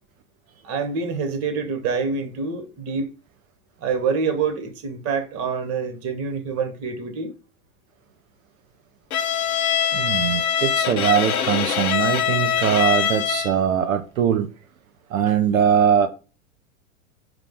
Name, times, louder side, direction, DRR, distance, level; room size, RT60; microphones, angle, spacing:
voice 1, 0.6-3.1 3.8-7.3, right 5 dB, 35° right, 0.9 m, -26 dB
Bowed string instrument, 9.1-13.7, left 9 dB, 85° left, 0.7 m, -23 dB
voice 2, 9.9-14.5 15.1-16.1, right 8 dB, 70° right, 0.6 m, -21 dB
4.8 x 2.0 x 4.5 m
figure-of-eight pair, 90°, 42 cm